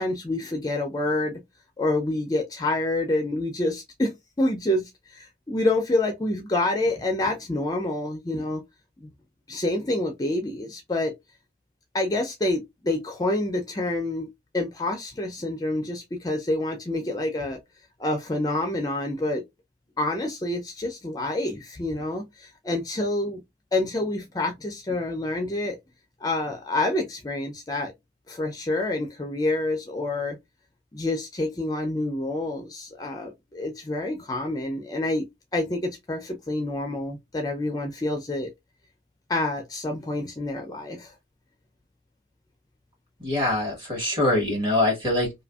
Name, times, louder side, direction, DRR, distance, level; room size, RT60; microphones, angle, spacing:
voice 1, 0.0-1.4 1.8-8.6 9.5-11.1 11.9-17.6 18.0-19.4 20.0-23.4 23.7-25.8 26.2-27.9 28.3-30.4 30.9-35.3 35.5-38.5 39.3-41.1, left 2 dB, 20° left, 0.4 m, -27 dB
voice 2, 43.2-45.3, left 1 dB, 25° right, 1.3 m, -24 dB
2.6 x 2.5 x 2.3 m
head